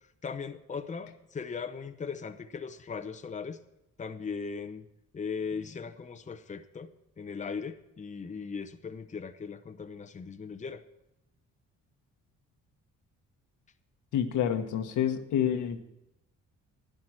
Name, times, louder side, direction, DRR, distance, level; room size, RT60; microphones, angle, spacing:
voice 1, 0.0-3.6 4.0-4.8 5.1-6.9 7.2-10.8, left 5 dB, 25° left, 8 dB, 0.8 m, -38 dB
voice 2, 14.1-15.8, left 9 dB, 80° left, 6 dB, 1.4 m, -28 dB
12.0 x 10.5 x 4.4 m, 0.89 s
cardioid pair, 90°, 30 cm